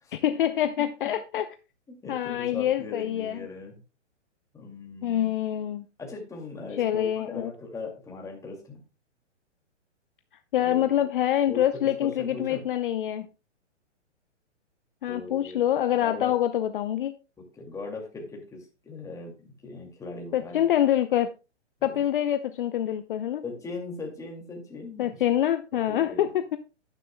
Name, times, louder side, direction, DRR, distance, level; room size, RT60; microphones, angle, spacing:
voice 1, 0.1-1.5 2.1-3.5 5.0-5.9 6.8-7.5 10.5-13.3 15.0-17.1 20.3-21.3 21.8-23.4 25.0-26.6, left 11 dB, 45° left, 0.7 m, -26 dB
voice 2, 1.9-3.7 4.5-5.3 6.0-8.8 10.6-10.9 11.5-12.6 15.1-15.6 16.0-16.4 17.4-20.6 21.8-22.0 23.4-25.2 25.7-26.3, left 3 dB, 10° left, 2.3 m, -39 dB
11.0 x 10.5 x 2.2 m
hypercardioid pair, 140°, 36 cm